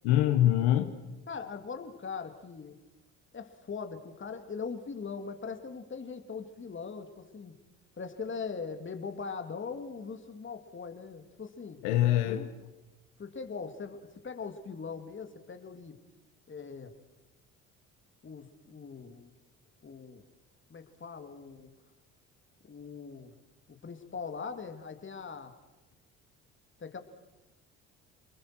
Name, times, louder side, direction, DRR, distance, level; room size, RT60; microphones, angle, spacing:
voice 1, 0.0-0.9 11.8-12.4, left 12 dB, 90° left, 7 dB, 1.4 m, -24 dB
voice 2, 1.3-2.8 3.3-7.6 8.0-11.8 12.2-12.5 13.2-16.0 16.5-16.9 18.2-19.3 19.8-20.2 20.7-21.7 22.6-23.3 23.7-25.6 26.8-27.0, left 5 dB, 35° left, 7 dB, 3.2 m, -41 dB
29.5 x 21.0 x 6.3 m, 1.1 s
supercardioid pair, 70°, 33 cm